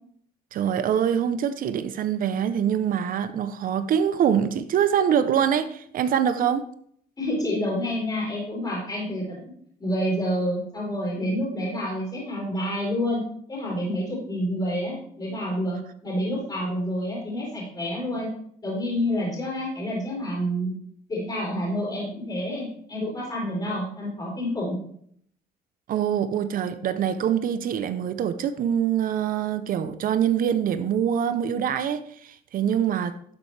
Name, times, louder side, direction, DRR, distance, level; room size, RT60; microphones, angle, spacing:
voice 1, 0.5-6.6 25.9-33.1, right 8 dB, 55° right, 0.7 m, -24 dB
voice 2, 7.2-9.4 9.8-13.2 13.5-15.8 16.0-18.3 18.6-20.7 21.1-24.8, equal, 25° left, 4.1 m, -28 dB
12.0 x 7.0 x 3.3 m
cardioid pair, 110°, 17 cm